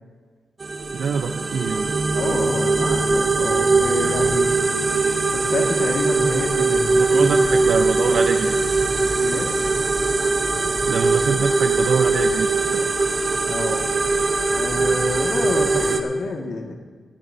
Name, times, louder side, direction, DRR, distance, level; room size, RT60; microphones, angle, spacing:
sound 1, 0.6-16.0, right 3 dB, 35° right, 0.9 m, -21 dB
voice 1, 0.9-1.9 5.0-5.2 7.0-8.8 10.9-12.9, right 6 dB, 75° right, 6 dB, 0.6 m, -25 dB
voice 2, 2.1-4.5 5.4-7.4 9.2-9.5 13.4-13.8 14.5-16.8, left 2 dB, 70° left, 1 dB, 1.8 m, -28 dB
19.5 x 14.5 x 2.7 m, 1.6 s
wide cardioid pair, 115°, 0 cm